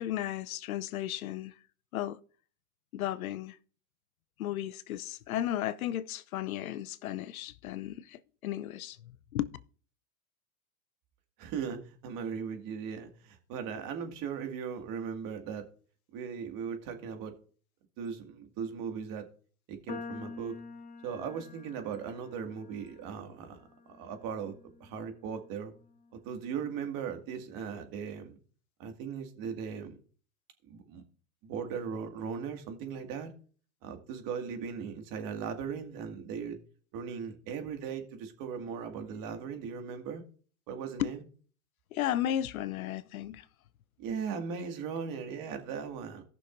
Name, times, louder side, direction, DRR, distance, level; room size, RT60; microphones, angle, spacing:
voice 1, 0.0-1.5 1.9-2.2 2.9-3.6 4.4-9.0 9.3-9.5 41.0-41.1 41.9-43.4, left 12 dB, 85° left, 0.7 m, -34 dB
voice 2, 11.4-15.7 16.1-17.3 18.0-19.3 19.7-20.6 21.0-25.7 26.1-28.4 28.8-30.0 30.6-31.0 31.4-33.3 33.8-36.6 36.9-40.2 40.7-41.2 44.0-46.2, right 6 dB, 50° right, 2.2 m, -38 dB
sound 1, 19.9-26.2, left 4 dB, 20° left, 1.3 m, -48 dB
18.0 x 6.0 x 2.6 m
hypercardioid pair, 105°, 42 cm